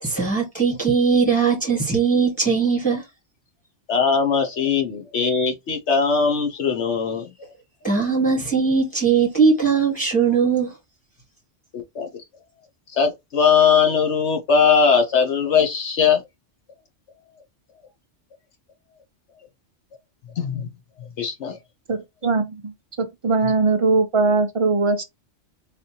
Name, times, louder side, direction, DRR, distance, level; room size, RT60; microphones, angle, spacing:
voice 1, 0.0-3.0 7.8-10.7, right 5 dB, 5° left, 1.5 m, -20 dB
voice 2, 3.9-7.5 11.7-12.1 12.9-16.2 20.4-20.7 21.2-21.6 23.4-23.5, left 6 dB, 70° left, 1.1 m, -20 dB
voice 3, 21.9-22.7 23.0-25.0, right 3 dB, 50° right, 0.3 m, -20 dB
4.1 x 3.4 x 2.8 m
omnidirectional pair, 1.3 m